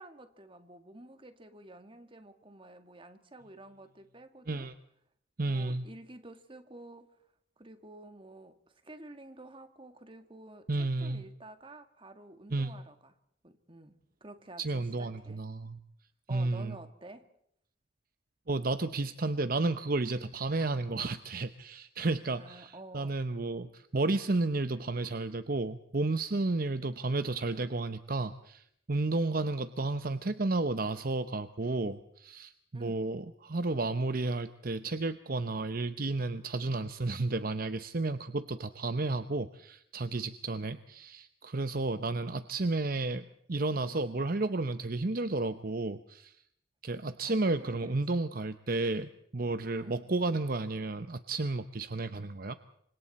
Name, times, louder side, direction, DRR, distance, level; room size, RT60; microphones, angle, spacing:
voice 1, 0.0-4.7 5.4-7.2 7.6-13.2 13.4-15.4 16.3-17.3 22.3-23.2 32.7-33.0 47.2-48.2 49.8-50.0, right 1 dB, 30° right, 8 dB, 2.0 m, -50 dB
voice 2, 5.4-5.8 10.7-11.2 12.5-12.7 14.6-15.8 16.3-16.8 18.5-46.4 46.8-52.6, right 2 dB, 50° right, 11 dB, 0.9 m, -32 dB
29.0 x 25.5 x 4.3 m, 0.71 s
head